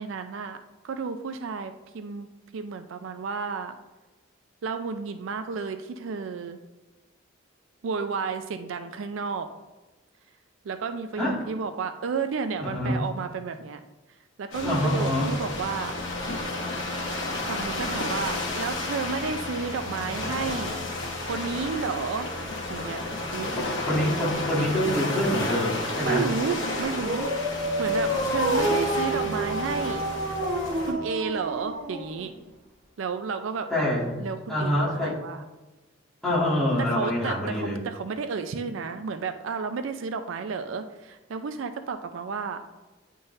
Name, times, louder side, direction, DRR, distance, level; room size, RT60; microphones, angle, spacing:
voice 1, 0.0-3.8 4.6-6.6 7.8-9.5 10.6-13.8 14.4-16.0 17.5-20.8 21.2-22.3 22.7-23.0 23.3-23.5 26.0-27.3 27.8-30.0 30.9-32.3 33.0-35.4 36.8-42.6, right 5 dB, 75° right, 8 dB, 0.4 m, -32 dB
voice 2, 12.6-13.0 14.6-15.3 23.5-26.2 33.7-34.2 34.5-35.2 36.2-37.8, left 1 dB, 5° left, -9 dB, 1.9 m, -26 dB
sound 1, 14.5-30.9, left 2 dB, 75° left, 1.2 m, -31 dB
Dog, 26.7-32.4, right 1 dB, 40° right, 1.1 m, -29 dB
9.4 x 3.8 x 2.6 m, 1.2 s
head